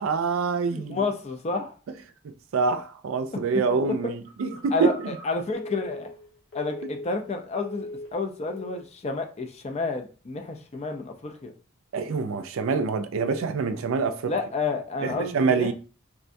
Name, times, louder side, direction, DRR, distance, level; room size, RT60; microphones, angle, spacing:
voice 1, 0.0-1.0 2.5-5.2 6.8-6.9 11.9-14.3 15.0-15.7, right 4 dB, 80° right, 0.4 m, -26 dB
voice 2, 0.7-1.7 4.0-4.1 4.5-6.1 6.5-11.5 14.3-15.7, left 3 dB, 30° left, 0.4 m, -30 dB
Telephone, 4.2-7.3 7.5-8.2 8.6-8.9, left 1 dB, 60° left, 1.2 m, -40 dB
3.6 x 2.2 x 2.5 m
head